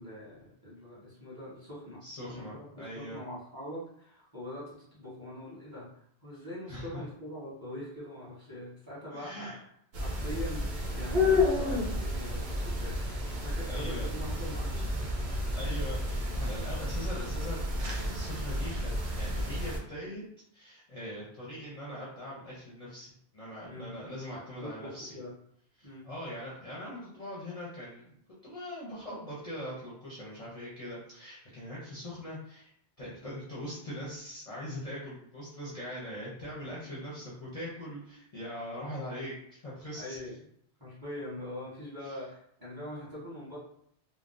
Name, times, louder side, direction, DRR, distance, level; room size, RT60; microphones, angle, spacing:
voice 1, 0.0-9.6 10.0-13.0 13.4-14.9 23.6-23.9 24.2-25.3 25.8-26.0 39.9-40.3 40.8-43.6, left 1 dB, 20° right, -10 dB, 1.3 m, -43 dB
voice 2, 2.0-3.2 6.7-7.0 9.1-9.6 13.6-14.2 15.5-20.2 20.5-25.1 25.8-28.2 28.4-32.7 33.0-40.2 42.0-42.1, equal, 40° left, -8 dB, 0.7 m, -41 dB
sound 1, 9.9-19.8, left 2 dB, 75° right, 1.0 m, -31 dB
3.5 x 2.1 x 2.5 m, 0.69 s
omnidirectional pair, 1.1 m